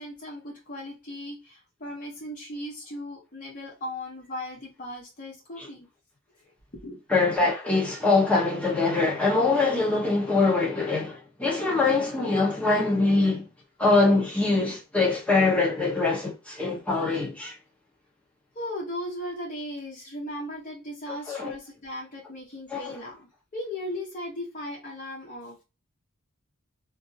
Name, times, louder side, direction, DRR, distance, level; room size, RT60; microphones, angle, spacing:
voice 1, 0.0-5.9 6.4-6.5 6.8-7.0 18.5-25.6, left 1 dB, 40° left, 0.9 m, -37 dB
voice 2, 7.1-13.4 13.8-17.5 21.3-21.5 22.7-22.9, left 3 dB, 5° left, 0.8 m, -23 dB
2.5 x 2.0 x 2.6 m
head